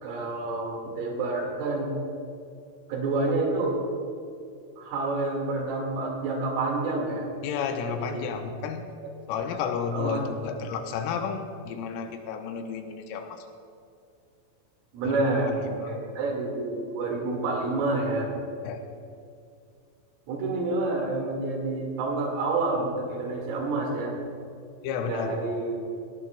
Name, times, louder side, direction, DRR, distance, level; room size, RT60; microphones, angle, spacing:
voice 1, 0.0-1.9 2.9-3.8 4.8-7.3 7.9-8.2 9.9-10.2 14.9-15.6 15.8-18.3 20.3-24.2 25.1-25.7, right 2 dB, 80° right, 0 dB, 4.7 m, -28 dB
voice 2, 7.4-8.9 9.3-13.5 15.0-15.2 15.7-16.0 18.6-18.9 24.8-25.4, left 6 dB, 85° left, 5 dB, 3.3 m, -32 dB
18.0 x 17.5 x 2.3 m, 2.4 s
omnidirectional pair, 5.8 m